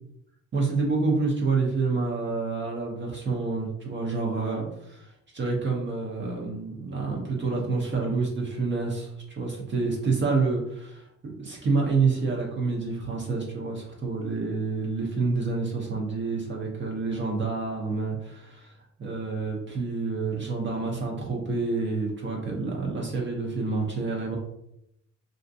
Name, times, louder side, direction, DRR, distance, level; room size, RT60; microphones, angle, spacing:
voice 1, 0.5-18.7 19.0-24.4, right 4 dB, 40° right, -1 dB, 0.6 m, -28 dB
2.5 x 2.1 x 2.5 m, 0.77 s
cardioid pair, 90°, 30 cm